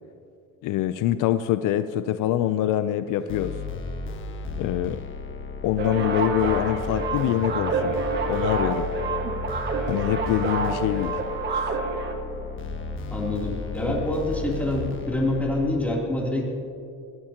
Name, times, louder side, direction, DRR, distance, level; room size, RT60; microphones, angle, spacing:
voice 1, 0.6-3.5 4.6-5.0 5.6-8.0 8.3-8.9 9.9-11.2, left 12 dB, 70° left, 12 dB, 0.6 m, -25 dB
sound 1, 3.3-15.7, left 4 dB, 40° left, 1.4 m, -34 dB
sound 2, 5.8-12.1, right 3 dB, 35° right, 1.7 m, -28 dB
voice 2, 13.1-16.4, left 1 dB, 5° left, -4 dB, 3.1 m, -26 dB
21.0 x 17.0 x 2.9 m, 2.7 s
cardioid pair, 125°, 32 cm